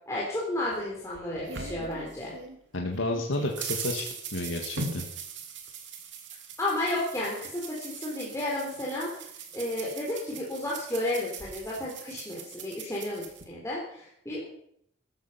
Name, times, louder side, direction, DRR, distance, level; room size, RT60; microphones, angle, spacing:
voice 1, 0.1-2.3 6.6-14.5, left 1 dB, 15° left, -5 dB, 3.8 m, -32 dB
sound 1, 0.7-2.6 2.9-13.4, right 5 dB, 65° right, 2.8 m, -40 dB
voice 2, 2.7-4.0 4.3-5.0, left 2 dB, 80° left, 1 dB, 2.1 m, -31 dB
14.0 x 13.5 x 5.8 m, 0.69 s
head